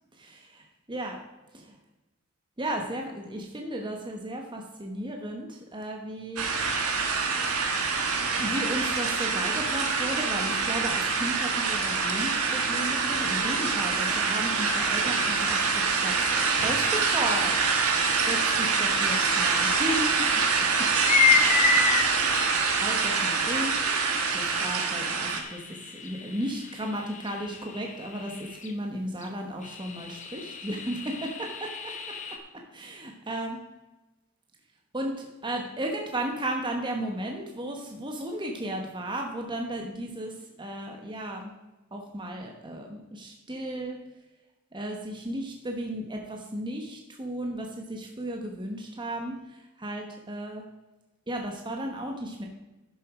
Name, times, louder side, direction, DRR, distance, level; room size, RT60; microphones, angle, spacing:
voice 1, 2.6-6.5 8.4-17.6 17.9-20.5 21.2-21.7 22.7-23.8 24.3-31.9 32.7-33.6 34.9-41.5 41.9-44.0 44.7-50.6 51.3-52.5, right 1 dB, 20° right, 2 dB, 1.1 m, -34 dB
sound 1, 6.4-25.4, right 4 dB, 70° right, 1.5 m, -25 dB
sound 2, 18.9-19.0 19.8-19.9 20.8-22.0 23.2-23.3 24.4-28.7 29.2-29.3 29.6-32.4, left 5 dB, 35° left, 1.1 m, -29 dB
11.0 x 6.9 x 4.9 m, 1.1 s
head